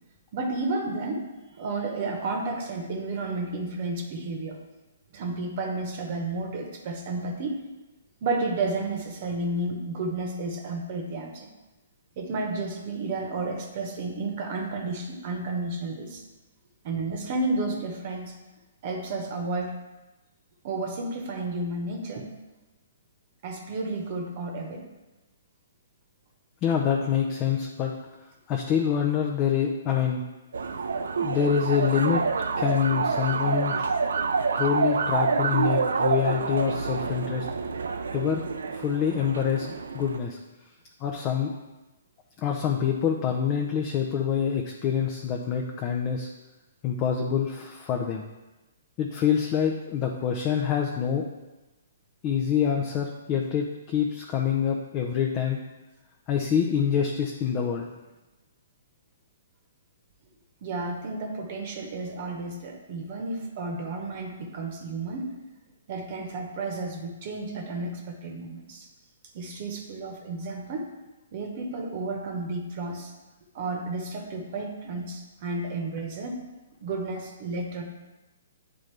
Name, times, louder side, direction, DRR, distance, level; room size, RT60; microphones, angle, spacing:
voice 1, 0.3-1.2 1.6-4.6 5.1-7.6 8.2-11.5 12.2-16.2 16.8-18.3 18.8-19.7 20.6-22.3 23.4-24.8 60.6-65.3 65.9-68.9 69.3-70.9 71.3-73.1 73.5-76.4 76.8-77.8, right 2 dB, 45° right, 2 dB, 1.0 m, -32 dB
voice 2, 26.6-27.9 28.5-30.2 31.2-32.2 32.6-33.9 34.6-37.5 38.1-38.4 38.7-40.4 41.0-41.5 42.4-46.3 46.8-48.2 49.0-51.2 52.2-55.6 56.3-57.9, left 8 dB, 30° left, 1 dB, 0.6 m, -26 dB
sound 1, 30.5-40.2, right 5 dB, 80° right, 0.4 m, -27 dB
9.0 x 3.8 x 3.3 m, 1.1 s
hypercardioid pair, 135°, 0 cm